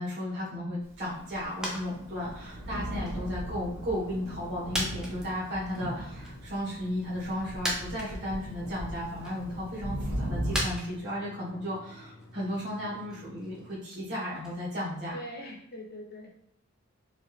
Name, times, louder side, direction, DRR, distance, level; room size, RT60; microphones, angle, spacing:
voice 1, 0.0-15.2, equal, 55° right, -8 dB, 1.5 m, -34 dB
Thunder, 1.1-10.6, right 1 dB, 85° right, 1.2 m, -38 dB
sound 1, 1.6-2.0 2.2-3.4 3.9-4.0 4.7-5.8 6.2-6.3 7.2-7.3 7.6-8.5 8.9-9.5 10.5-14.6 14.9-15.0, equal, 5° right, 0.7 m, -37 dB
sound 2, 2.1-13.8, left 1 dB, 75° left, 0.9 m, -52 dB
voice 2, 15.1-16.3, equal, 50° left, -1 dB, 1.1 m, -42 dB
4.5 x 2.7 x 3.1 m, 0.72 s
head